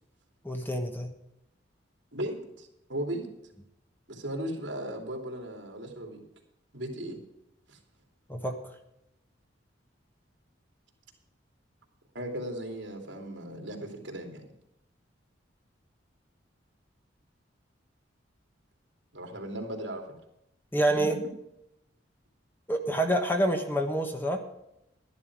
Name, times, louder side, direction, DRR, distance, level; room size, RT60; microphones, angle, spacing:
voice 1, 0.4-1.1 8.3-8.7 20.7-21.2 22.7-24.4, right 1 dB, 10° left, 5 dB, 1.2 m, -27 dB
voice 2, 2.1-3.3 4.1-6.2 6.7-7.2 7.7-7.8 12.1-14.5 19.1-20.1 21.0-21.1, right 1 dB, 70° right, 2 dB, 2.9 m, -36 dB
12.5 x 11.0 x 4.8 m, 0.85 s
head